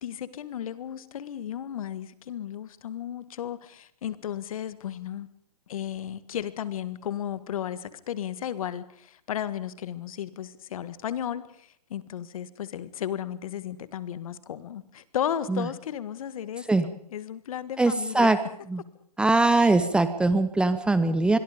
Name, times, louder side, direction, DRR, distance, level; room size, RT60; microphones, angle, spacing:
voice 1, 0.0-5.3 5.7-18.3 19.6-19.8, left 10 dB, 60° left, 15 dB, 1.8 m, -34 dB
voice 2, 17.8-18.4 18.7-18.8 19.2-21.4, right 2 dB, 5° right, 12 dB, 0.9 m, -22 dB
26.5 x 22.0 x 5.2 m, 0.66 s
hypercardioid pair, 140°, 20 cm